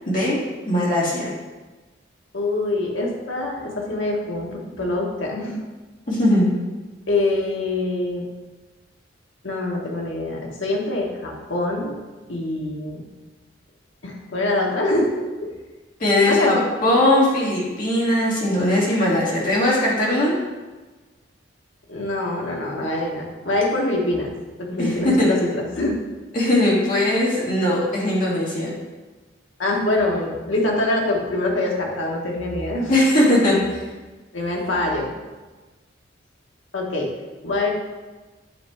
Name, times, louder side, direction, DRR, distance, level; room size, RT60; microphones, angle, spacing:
voice 1, 0.1-0.4 0.6-1.2 6.1-6.5 16.0-16.5 16.8-20.3 24.8-25.3 26.3-28.7 32.9-33.6, left 1 dB, 45° left, -7 dB, 2.3 m, -19 dB
voice 2, 2.3-5.6 7.1-8.2 9.4-12.0 12.3-13.1 14.0-15.5 16.2-16.6 21.9-24.3 24.6-26.0 29.6-32.9 34.3-35.1 36.7-37.1 37.4-37.7, left 2 dB, 85° left, -1 dB, 1.4 m, -24 dB
8.6 x 3.2 x 4.9 m, 1.2 s
head